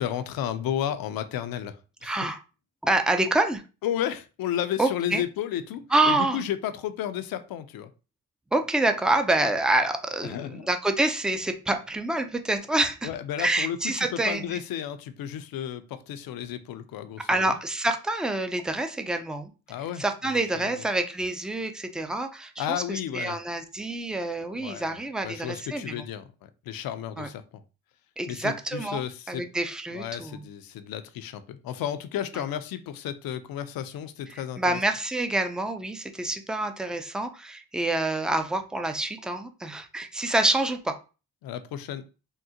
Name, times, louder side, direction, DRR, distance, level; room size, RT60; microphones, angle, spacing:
voice 1, 0.0-2.2 3.8-7.9 10.2-10.6 13.0-17.5 19.7-20.0 20.5-20.7 22.6-23.4 24.6-25.0 25.2-27.6 28.3-29.5 29.9-34.8 41.4-42.0, left 10 dB, 75° left, 0.5 m, -33 dB
voice 2, 2.0-2.4 2.8-3.6 4.8-5.2 5.9-6.4 8.5-13.1 13.4-14.6 17.3-19.5 20.0-25.9 27.2-27.3 28.2-29.0 29.3-30.4 34.3-41.0, right 2 dB, ahead, 0.3 m, -27 dB
3.6 x 2.1 x 2.7 m
cardioid pair, 80°, 36 cm